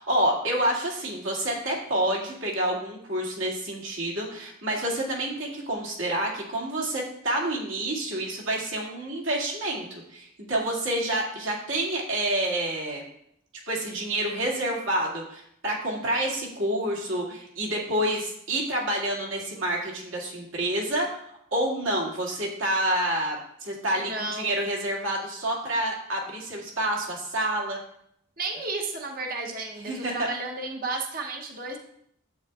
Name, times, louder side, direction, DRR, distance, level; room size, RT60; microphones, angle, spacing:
voice 1, 0.0-9.9 10.1-13.0 13.7-21.1 21.5-27.8 29.9-30.3, right 1 dB, 80° right, -3 dB, 2.2 m, -28 dB
voice 2, 24.0-24.6 28.4-31.8, right 3 dB, 45° right, 2 dB, 0.8 m, -33 dB
9.9 x 8.3 x 2.4 m, 0.73 s
head